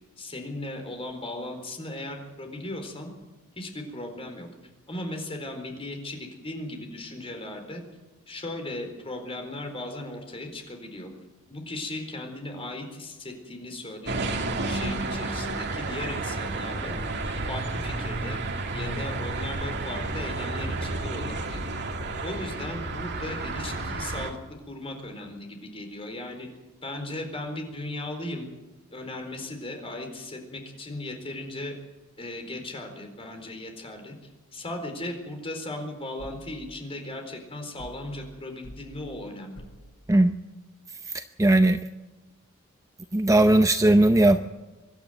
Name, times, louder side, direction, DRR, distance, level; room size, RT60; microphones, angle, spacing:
voice 1, 0.2-3.1 3.6-4.5 4.9-7.8 8.3-11.1 11.5-17.0 17.5-18.4 18.7-21.7 22.2-24.4 24.7-26.5 26.8-28.5 28.9-31.7 32.2-34.2 34.5-39.6, left 1 dB, 25° left, 4 dB, 4.2 m, -37 dB
sound 1, 14.1-24.3, right 2 dB, 55° right, 2.3 m, -31 dB
sound 2, 36.2-36.5 37.8-38.1 38.6-38.9 39.5-39.9, equal, 85° left, 6.1 m, -45 dB
voice 2, 41.1-41.8 43.1-44.4, right 1 dB, 15° right, 8 dB, 0.6 m, -18 dB
24.0 x 12.0 x 9.2 m, 1.1 s
head